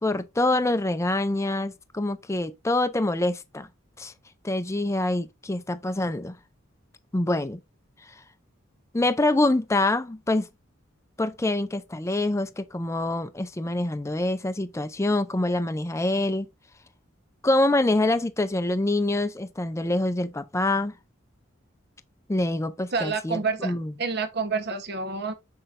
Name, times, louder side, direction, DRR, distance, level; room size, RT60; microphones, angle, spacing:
voice 1, 0.0-3.7 4.0-4.1 4.4-6.4 7.1-7.6 8.9-10.5 11.2-16.5 17.4-20.9 22.3-23.9, left 2 dB, 15° left, 0.5 m, -25 dB
voice 2, 22.9-23.7 24.0-25.3, right 4 dB, 50° right, 1.0 m, -28 dB
6.6 x 5.8 x 2.5 m
head